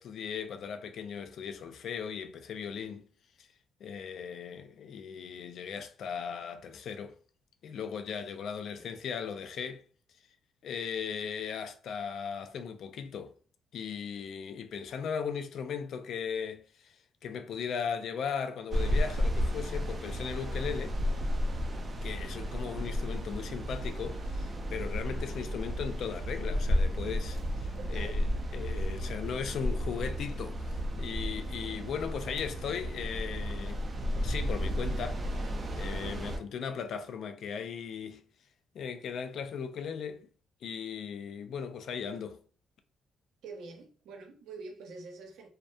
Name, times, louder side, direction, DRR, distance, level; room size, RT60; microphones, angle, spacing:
voice 1, 0.0-3.0 3.4-3.5 3.8-7.1 7.6-9.8 10.6-13.3 13.7-16.9 17.2-21.0 22.0-28.2 28.5-33.8 34.2-38.2 38.7-40.3 40.6-42.4, left 7 dB, 70° left, 0.3 m, -37 dB
sound 1, 18.7-36.4, equal, 35° right, 0.4 m, -33 dB
voice 2, 22.0-22.4 27.8-28.6 43.4-45.5, right 3 dB, 80° right, 0.6 m, -47 dB
2.2 x 2.1 x 2.6 m
cardioid pair, 90°, 0 cm